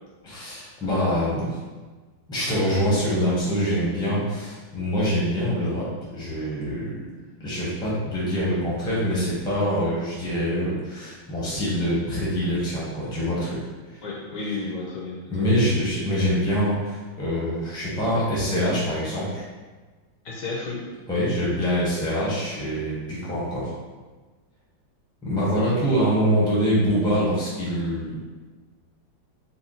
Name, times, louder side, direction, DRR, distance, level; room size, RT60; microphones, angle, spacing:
voice 1, 0.2-1.6 2.3-5.9 6.1-7.1 7.4-13.6 13.9-14.0 15.3-19.4 21.1-23.7 25.2-28.2, equal, 5° left, -7 dB, 0.6 m, -24 dB
voice 2, 14.0-15.6 20.2-20.8 21.4-21.5, left 3 dB, 70° left, -4 dB, 1.2 m, -32 dB
4.1 x 2.2 x 4.0 m, 1.3 s
omnidirectional pair, 2.2 m